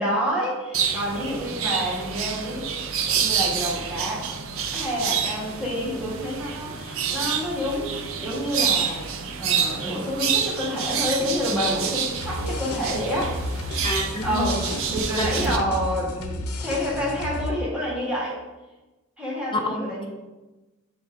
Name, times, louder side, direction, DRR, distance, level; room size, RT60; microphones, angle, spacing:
voice 1, 0.0-2.7 3.1-4.2 4.7-9.0 9.4-13.3 14.2-14.6 14.9-18.4 19.2-20.1, equal, 5° right, -6 dB, 1.5 m, -28 dB
sound 1, 0.7-15.6, right 6 dB, 65° right, 0.5 m, -28 dB
sound 2, 12.1-17.5, left 1 dB, 80° left, 0.6 m, -32 dB
voice 2, 13.8-14.7 15.2-15.3 19.5-20.1, left 2 dB, 20° left, 4 dB, 0.6 m, -29 dB
7.5 x 3.6 x 4.2 m, 1.1 s
head